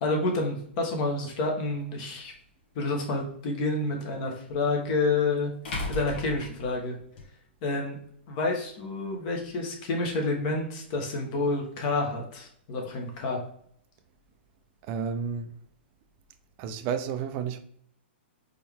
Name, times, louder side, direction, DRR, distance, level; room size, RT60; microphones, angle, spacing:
voice 1, 0.0-2.3 2.7-5.5 5.9-7.0 7.6-8.0 8.3-13.4, left 3 dB, 45° left, 1.3 m, -29 dB
sound 1, 1.8-1.9 4.5-4.6 5.6-7.2, left 2 dB, 60° left, 2.0 m, -35 dB
voice 2, 14.9-15.5 16.6-17.6, right 7 dB, 35° right, 0.5 m, -31 dB
4.3 x 3.3 x 3.5 m
hypercardioid pair, 145°, 6 cm